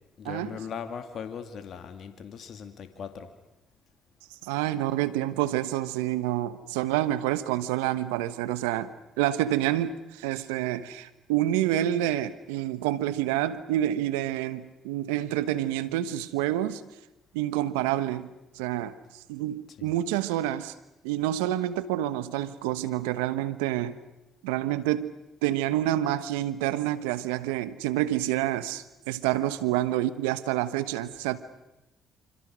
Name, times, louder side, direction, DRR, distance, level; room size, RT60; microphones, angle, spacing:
voice 1, 0.2-3.3 19.7-20.0, left 7 dB, 60° left, 8 dB, 2.3 m, -39 dB
voice 2, 4.4-8.9 9.2-16.8 17.3-18.9 19.3-20.7 21.0-24.0 24.4-25.1 25.4-31.4, right 13 dB, 90° right, 14 dB, 1.1 m, -28 dB
27.0 x 26.0 x 6.3 m, 0.94 s
hypercardioid pair, 55°, 0 cm